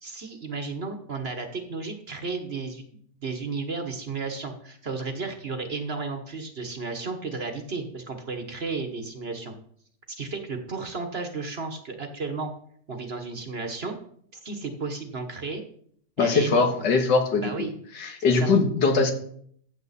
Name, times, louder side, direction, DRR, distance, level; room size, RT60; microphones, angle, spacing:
voice 1, 0.0-2.8 3.2-9.5 10.1-12.5 12.9-14.0 14.3-15.6 16.2-16.8 17.4-17.7 18.2-18.5, right 4 dB, 40° right, 6 dB, 1.2 m, -33 dB
voice 2, 16.2-17.5 18.0-19.1, left 4 dB, 85° left, 5 dB, 2.0 m, -21 dB
14.0 x 7.4 x 4.1 m, 0.63 s
omnidirectional pair, 1.8 m